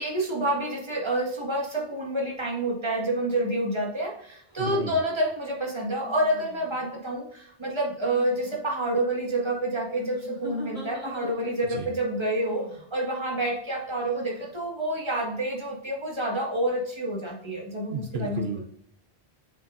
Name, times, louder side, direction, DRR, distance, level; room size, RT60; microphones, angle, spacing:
voice 1, 0.0-18.4, right 1 dB, 25° right, -2 dB, 1.8 m, -28 dB
sound 1, 4.5-4.7 6.0-6.9 8.0-8.6 9.9-11.7 12.4-12.8 14.0-14.5, left 4 dB, 45° right, 2.9 m, -43 dB
voice 2, 4.6-5.0 11.7-11.9 17.9-18.6, right 3 dB, 80° right, 5 dB, 1.1 m, -32 dB
7.0 x 6.2 x 2.6 m, 0.70 s
omnidirectional pair, 1.0 m